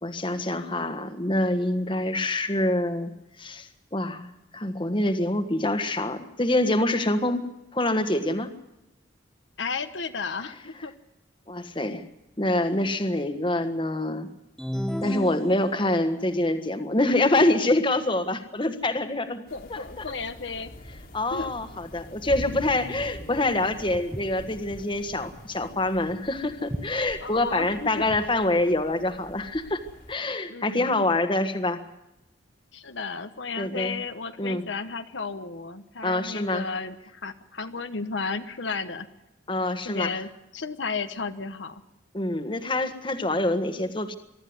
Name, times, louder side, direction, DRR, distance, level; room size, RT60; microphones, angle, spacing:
voice 1, 0.0-3.1 3.4-7.4 7.7-8.5 11.5-12.1 12.4-14.3 15.0-19.4 19.7-20.0 21.1-29.8 30.1-31.8 33.6-33.9 34.4-34.6 36.0-36.6 39.5-40.1 42.1-44.2, left 1 dB, 25° left, 9 dB, 1.5 m, -26 dB
voice 2, 9.6-10.9 19.5-20.7 21.3-21.5 27.2-28.1 30.5-30.9 32.7-39.1 39.8-41.8, left 4 dB, 75° left, 9 dB, 1.1 m, -33 dB
sound 1, 14.6-16.2, equal, ahead, 0.8 m, -32 dB
sound 2, 19.5-30.1, equal, 50° left, 2.3 m, -44 dB
Walk footsteps, 23.9-28.4, equal, 15° right, 1.1 m, -40 dB
23.0 x 13.0 x 9.5 m, 0.93 s
head